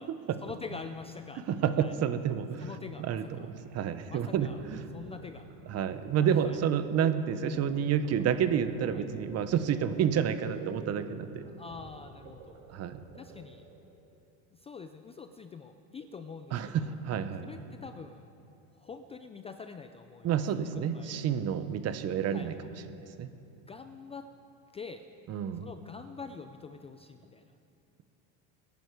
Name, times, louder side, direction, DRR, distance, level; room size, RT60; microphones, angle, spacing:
voice 1, 0.4-1.4 1.8-1.9 2.6-3.5 4.1-4.6 4.9-5.5 6.2-6.6 8.9-9.1 11.5-12.6 13.1-13.7 14.5-17.0 17.4-18.3 18.7-20.3 20.7-21.3 22.3-22.5 23.7-24.3 24.7-25.0 25.6-27.5, left 5 dB, 15° left, 8 dB, 0.4 m, -45 dB
voice 2, 1.6-2.7 3.0-3.5 3.7-4.8 5.7-11.4 12.7-13.0 16.5-17.5 20.2-22.5 22.9-23.3 25.3-25.7, right 8 dB, 40° right, 11 dB, 1.0 m, -29 dB
sound 1, 3.6-14.2, right 3 dB, 70° right, 4.1 m, -49 dB
23.0 x 11.0 x 4.8 m, 2.7 s
supercardioid pair, 125°, 40 cm